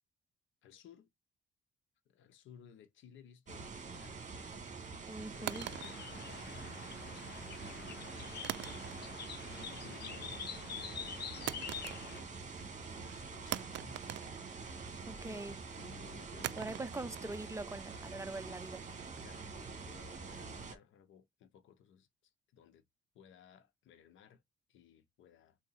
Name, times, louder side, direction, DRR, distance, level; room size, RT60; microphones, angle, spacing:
voice 1, 0.6-1.1 2.1-4.3 5.3-6.7 7.7-8.8 9.5-14.0 15.2-16.8 19.2-22.8 23.1-24.4 24.7-25.6, left 8 dB, 80° left, 0.9 m, -59 dB
sound 1, 3.5-20.8, right 4 dB, 40° right, 1.5 m, -46 dB
voice 2, 5.1-5.7 15.1-15.6 16.6-18.8, right 2 dB, 15° right, 0.5 m, -42 dB
sound 2, 5.5-12.2, left 7 dB, 55° left, 1.0 m, -46 dB
Hollow wooden stick falling on plastic, 5.5-6.9 8.4-9.3 9.6-10.1 11.5-12.4 12.7-12.8 13.5-15.0 16.4-19.5, right 14 dB, 65° right, 0.4 m, -44 dB
3.9 x 2.6 x 4.1 m
cardioid pair, 90°, 20 cm